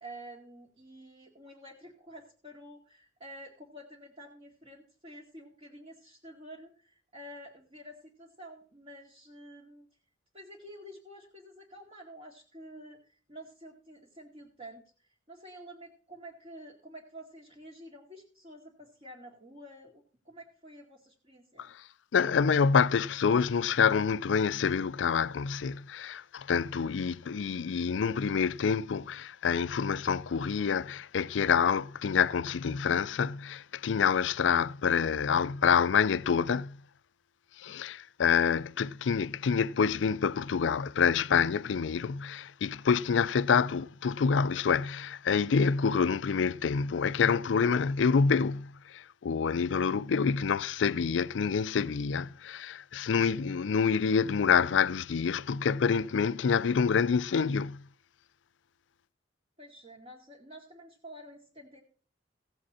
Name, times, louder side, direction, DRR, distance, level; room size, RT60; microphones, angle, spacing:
voice 1, 0.0-9.9 10.3-21.7 59.6-61.8, right 1 dB, 35° right, 2.1 m, -49 dB
voice 2, 22.1-36.8 37.6-57.8, left 6 dB, 85° left, 0.4 m, -27 dB
16.0 x 7.8 x 4.2 m
head